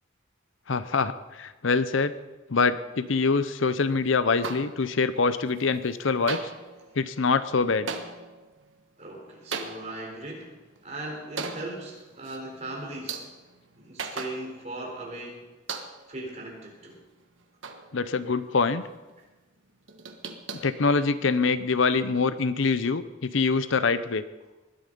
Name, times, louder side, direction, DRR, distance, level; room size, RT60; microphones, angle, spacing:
voice 1, 0.7-2.1 2.5-6.4 7.0-7.9 17.9-18.8 20.6-24.2, left 4 dB, 70° left, 14 dB, 0.7 m, -24 dB
sound 1, 4.4-5.2 5.5-6.0 6.3-14.9 15.1-15.2 15.7-16.2 16.7-18.4 18.7-19.1 19.5-21.5, right 5 dB, 70° right, 1.5 m, -40 dB
voice 2, 9.0-10.5 10.8-13.2 13.8-15.5 16.1-17.0 19.2-19.3, right 1 dB, 35° right, 0 dB, 4.1 m, -38 dB
20.0 x 11.5 x 5.4 m, 1.2 s
head